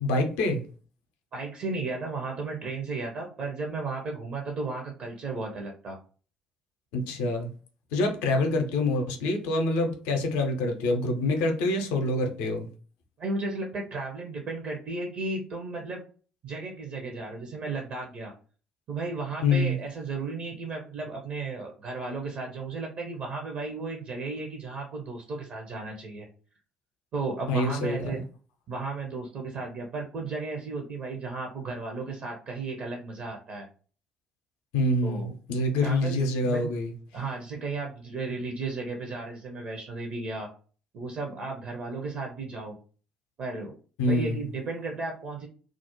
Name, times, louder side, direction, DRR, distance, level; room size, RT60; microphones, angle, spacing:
voice 1, 0.0-0.6 6.9-7.5 7.9-12.7 19.4-19.8 27.5-28.2 34.7-36.9 44.0-44.4, left 2 dB, 65° left, 0.5 m, -26 dB
voice 2, 1.3-6.0 13.2-16.0 16.4-18.3 18.9-26.3 27.1-28.2 28.7-33.7 35.0-35.3 35.8-36.7 37.1-40.5 40.9-42.8 43.4-43.7 44.0-45.5, right 3 dB, 50° right, 0.6 m, -34 dB
2.3 x 2.0 x 2.9 m
figure-of-eight pair, 50°, 4 cm